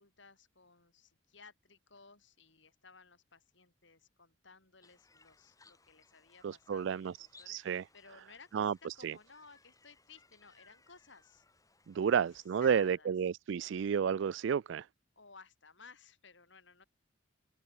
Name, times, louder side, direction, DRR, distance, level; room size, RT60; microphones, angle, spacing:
voice 1, 0.0-11.4 12.1-12.2 12.6-13.1 15.2-16.8, left 5 dB, 65° left, 5.5 m, -58 dB
sound 1, 4.8-13.0, left 3 dB, 20° left, 6.5 m, -66 dB
voice 2, 6.4-7.1 7.5-7.8 8.5-8.7 9.0-9.1 11.9-14.9, right 7 dB, 65° right, 0.3 m, -31 dB
open air
head